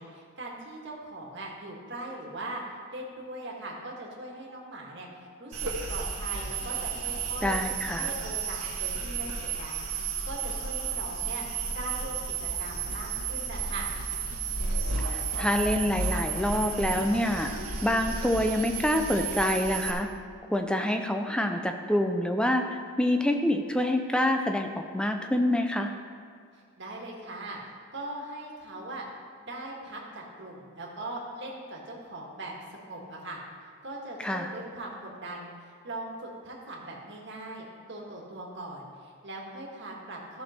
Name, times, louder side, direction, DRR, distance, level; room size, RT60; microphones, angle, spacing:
voice 1, 0.0-2.6 2.9-7.6 7.9-9.3 9.5-11.5 11.7-13.9 26.8-27.6 27.9-29.0 29.4-33.4 33.8-40.4, right 1 dB, 50° right, -2 dB, 1.7 m, -40 dB
sound 1, 5.5-19.9, right 5 dB, 85° right, 1.5 m, -32 dB
voice 2, 7.4-8.1 15.1-17.5 17.8-20.1 20.5-25.9 34.2-34.5, left 1 dB, 5° left, 4 dB, 0.5 m, -26 dB
14.0 x 6.4 x 4.3 m, 2.2 s
head